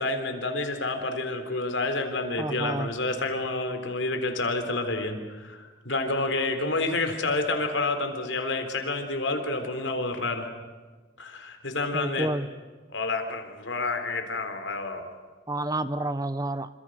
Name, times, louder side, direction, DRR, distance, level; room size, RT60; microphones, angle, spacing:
voice 1, 0.0-10.5 11.2-12.3 12.9-15.1, left 2 dB, 75° left, 6 dB, 3.9 m, -29 dB
voice 2, 2.4-2.9 11.9-12.5 15.5-16.7, right 2 dB, 20° right, 13 dB, 0.9 m, -29 dB
27.5 x 26.0 x 6.4 m, 1.3 s
head